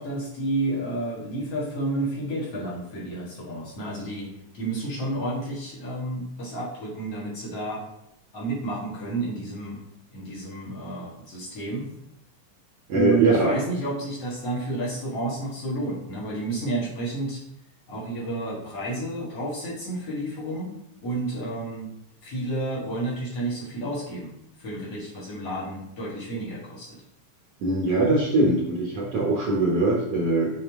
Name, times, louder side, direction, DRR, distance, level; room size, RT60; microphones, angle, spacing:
voice 1, 0.0-4.3 4.5-7.8 8.3-9.8 10.1-11.9 12.9-17.4 17.9-20.7 21.0-21.9 22.2-24.3 24.6-27.0, right 2 dB, 50° left, -6 dB, 2.5 m, -31 dB
voice 2, 12.9-13.6 27.6-30.5, right 2 dB, 65° right, -4 dB, 1.7 m, -22 dB
7.2 x 5.2 x 3.6 m, 0.79 s
omnidirectional pair, 4.0 m